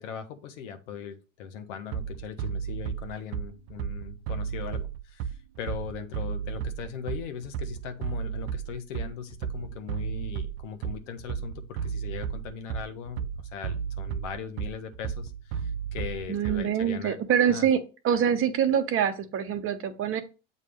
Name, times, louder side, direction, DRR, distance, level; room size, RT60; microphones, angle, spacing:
voice 1, 0.0-13.3 13.5-17.2 17.4-17.7, left 7 dB, 80° left, 8 dB, 1.2 m, -39 dB
Bass drum, 1.9-16.9, right 7 dB, 70° right, 0.5 m, -34 dB
voice 2, 16.3-20.2, right 8 dB, 35° right, 9 dB, 0.9 m, -25 dB
7.5 x 2.8 x 5.0 m, 0.32 s
supercardioid pair, 110°, 36 cm